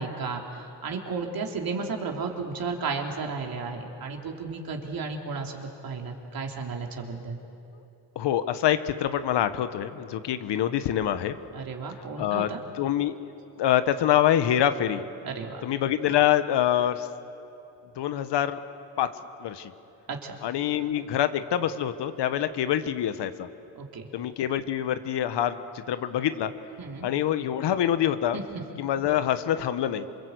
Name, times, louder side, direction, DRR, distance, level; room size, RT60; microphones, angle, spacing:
voice 1, 0.0-7.4 11.5-12.6 15.2-15.6 20.1-20.4 23.7-24.1 26.8-27.1 28.3-28.5, right 4 dB, 50° right, 2 dB, 3.5 m, -33 dB
voice 2, 8.1-11.4 12.2-12.5 12.8-15.0 15.6-17.1 18.0-18.6 19.0-19.1 19.4-19.7 20.4-23.5 24.1-25.6 25.9-26.5 27.0-28.4 28.8-30.1, left 11 dB, 60° left, 11 dB, 1.4 m, -25 dB
27.5 x 23.0 x 8.3 m, 2.8 s
cardioid pair, 95°, 46 cm